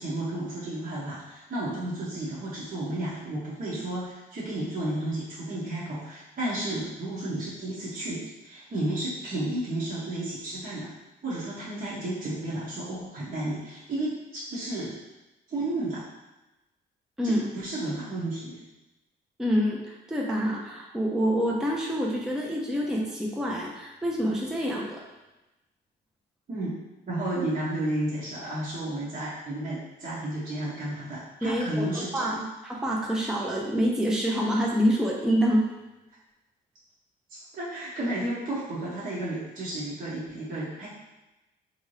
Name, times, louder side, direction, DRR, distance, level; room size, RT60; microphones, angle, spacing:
voice 1, 0.0-10.9 11.2-15.0 15.5-16.1 17.2-18.6 26.5-26.8 27.1-32.4 37.3-40.9, right 1 dB, 45° right, -9 dB, 1.0 m, -32 dB
voice 2, 19.4-25.0 31.4-31.9 32.1-32.4 32.6-35.6, equal, 5° right, -2 dB, 0.5 m, -26 dB
3.4 x 2.7 x 3.2 m, 1.0 s
cardioid pair, 90°, 20 cm